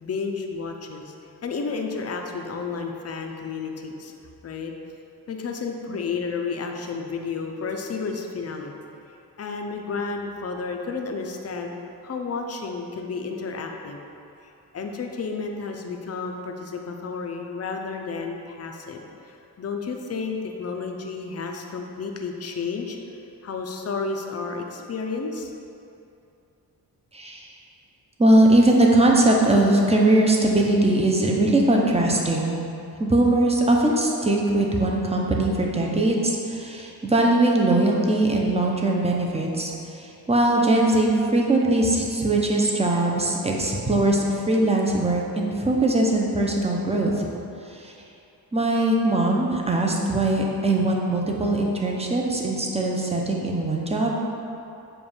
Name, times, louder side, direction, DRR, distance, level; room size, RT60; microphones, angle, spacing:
voice 1, 0.0-1.1 1.4-4.1 4.4-4.7 5.3-8.8 9.4-11.7 12.0-14.0 14.7-23.0 23.4-25.5, left 4 dB, 40° left, 3 dB, 0.6 m, -31 dB
voice 2, 27.1-27.5 28.2-32.6 33.0-47.3 47.7-47.9 48.5-54.2, right 1 dB, 15° right, -1 dB, 0.8 m, -21 dB
6.9 x 2.6 x 5.5 m, 2.7 s
cardioid pair, 85°, 39 cm